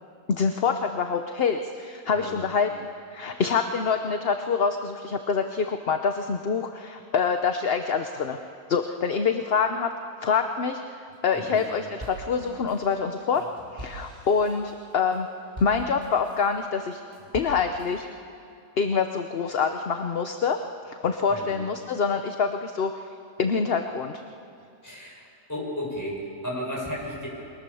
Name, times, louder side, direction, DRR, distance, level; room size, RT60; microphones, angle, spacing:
voice 1, 0.3-2.7 3.1-8.4 8.7-9.9 10.2-10.8 11.2-13.4 13.7-15.3 15.6-17.0 17.3-18.0 18.8-20.6 20.9-22.9 23.4-24.2, left 5 dB, 45° left, 6 dB, 1.0 m, -25 dB
sound 1, 11.1-11.7 12.0-16.5 16.9-17.9, right 2 dB, 25° right, 6.8 m, -43 dB
voice 2, 24.8-27.3, equal, 10° left, -3 dB, 6.4 m, -34 dB
28.5 x 22.5 x 7.1 m, 2.5 s
omnidirectional pair, 1.7 m